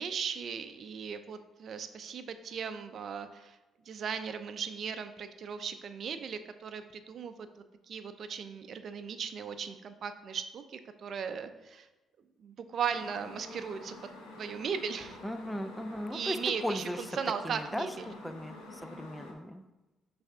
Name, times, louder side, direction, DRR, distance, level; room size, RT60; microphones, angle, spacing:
voice 1, 0.0-3.6 3.9-7.5 7.9-11.9 12.4-14.0 14.4-15.2 16.1-18.1, right 6 dB, 60° right, 10 dB, 0.5 m, -37 dB
sound 1, 12.9-19.3, left 2 dB, 85° left, 1.2 m, -48 dB
voice 2, 15.2-17.0 17.4-19.6, equal, 5° left, 10 dB, 0.5 m, -37 dB
5.7 x 3.4 x 5.5 m, 1.1 s
supercardioid pair, 65°, 0 cm